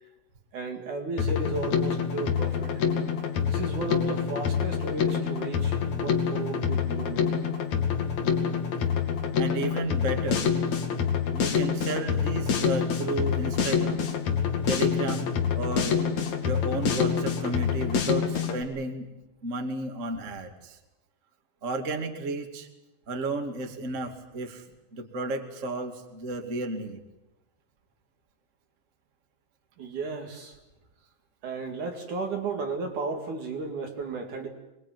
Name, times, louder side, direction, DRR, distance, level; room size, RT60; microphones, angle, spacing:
voice 1, 0.5-2.8 3.5-7.3 29.8-30.6 31.4-34.5, right 4 dB, 50° right, 3 dB, 3.0 m, -34 dB
Drum kit, 1.2-18.6, left 7 dB, 45° left, 2.7 m, -27 dB
voice 2, 9.4-10.4 11.3-14.0 14.7-16.0 16.4-19.1 19.4-20.8 21.6-22.7 23.1-24.6 24.9-27.0, right 2 dB, 70° right, 3 dB, 0.7 m, -33 dB
25.0 x 21.5 x 9.3 m, 0.95 s
omnidirectional pair, 6.0 m